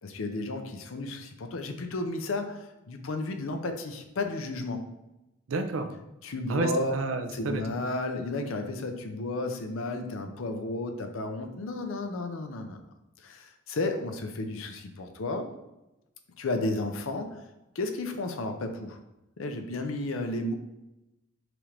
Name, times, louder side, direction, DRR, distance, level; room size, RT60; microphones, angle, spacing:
voice 1, 0.0-4.9 6.2-6.9 7.3-12.8 13.2-15.5 16.4-17.4 17.8-19.0 19.4-20.5, left 2 dB, 70° left, 6 dB, 0.5 m, -33 dB
voice 2, 5.5-5.9 6.5-7.6, right 3 dB, 65° right, 7 dB, 0.4 m, -30 dB
6.0 x 2.5 x 3.3 m, 0.94 s
head